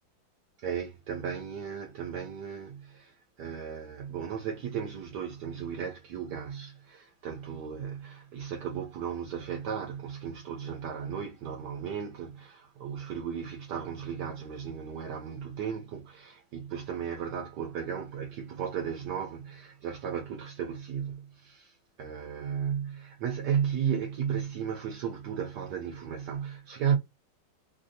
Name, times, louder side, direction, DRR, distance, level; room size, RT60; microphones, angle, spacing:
voice 1, 0.6-27.0, right 8 dB, 70° right, 1.1 m, -35 dB
3.4 x 2.6 x 2.6 m
omnidirectional pair, 2.1 m